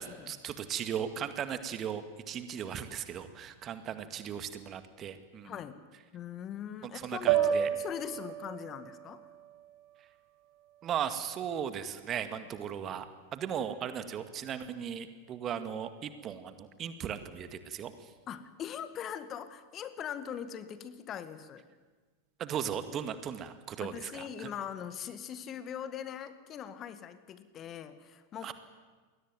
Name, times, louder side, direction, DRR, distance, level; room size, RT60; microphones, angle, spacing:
voice 1, 0.0-5.5 6.8-7.7 10.8-13.1 13.3-18.1 22.4-24.5 28.4-28.5, right 8 dB, 30° right, 10 dB, 2.0 m, -37 dB
voice 2, 5.4-5.8 6.1-9.3 18.3-21.7 23.8-28.5, left 9 dB, 30° left, 12 dB, 2.0 m, -41 dB
sound 1, 7.3-11.5, right 10 dB, 45° right, 1.7 m, -33 dB
29.0 x 22.0 x 9.3 m, 1.4 s
figure-of-eight pair, 90°, 0 cm